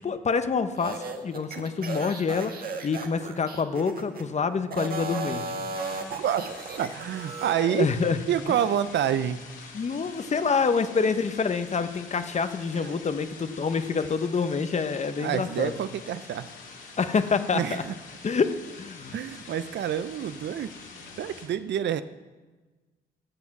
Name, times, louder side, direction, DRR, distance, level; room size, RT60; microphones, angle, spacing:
voice 1, 0.0-5.4 7.6-8.2 9.7-15.7 17.0-17.8 18.2-18.5 18.8-19.2, left 5 dB, 35° left, 10 dB, 0.9 m, -27 dB
sound 1, 0.8-4.3 4.7-7.6, right 3 dB, 50° right, 1.6 m, -35 dB
sound 2, 5.7-21.5, left 4 dB, 70° left, 3.0 m, -46 dB
voice 2, 6.2-7.9 8.3-9.4 12.7-12.9 15.2-16.5 17.5-17.9 19.1-20.7 21.2-22.0, right 9 dB, 65° right, 13 dB, 0.6 m, -28 dB
14.0 x 7.1 x 6.0 m, 1.3 s
cardioid pair, 90°, 20 cm